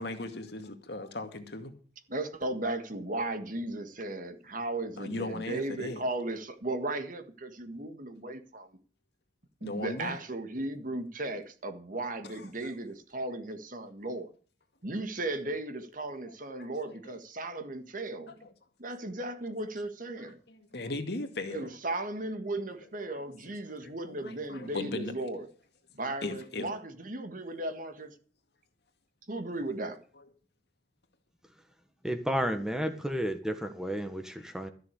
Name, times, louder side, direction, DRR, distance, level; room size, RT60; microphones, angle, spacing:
voice 1, 0.0-1.7 5.0-6.0 9.6-10.2 12.2-12.7 16.6-16.7 17.1-17.2 18.4-18.5 20.2-21.7 23.1-23.2 23.8-25.1 26.2-26.7, left 2 dB, 65° left, 2.2 m, -38 dB
voice 2, 2.1-8.7 9.6-14.3 14.8-18.4 18.8-20.4 21.5-25.5 25.9-28.1 29.3-30.0, right 2 dB, 50° right, 1.7 m, -36 dB
voice 3, 32.0-34.7, equal, 5° right, 1.4 m, -32 dB
13.5 x 6.9 x 8.4 m
head